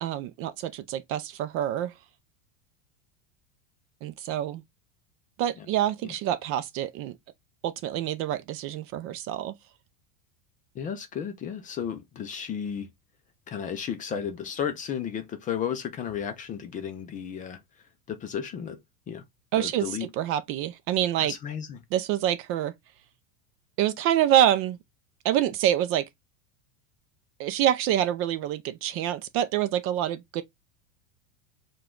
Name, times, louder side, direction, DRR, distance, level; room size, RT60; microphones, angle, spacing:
voice 1, 0.0-1.9 4.0-4.6 5.4-7.2 7.6-9.5 19.5-21.3 21.9-22.7 23.8-24.8 25.2-26.1 27.4-30.4, right 11 dB, 40° right, 0.4 m, -26 dB
voice 2, 10.8-12.9 13.5-17.6 18.1-18.8 19.1-19.2 19.5-20.1 21.2-21.8, left 8 dB, 20° left, 0.4 m, -33 dB
4.7 x 2.3 x 3.6 m
supercardioid pair, 140°, 37 cm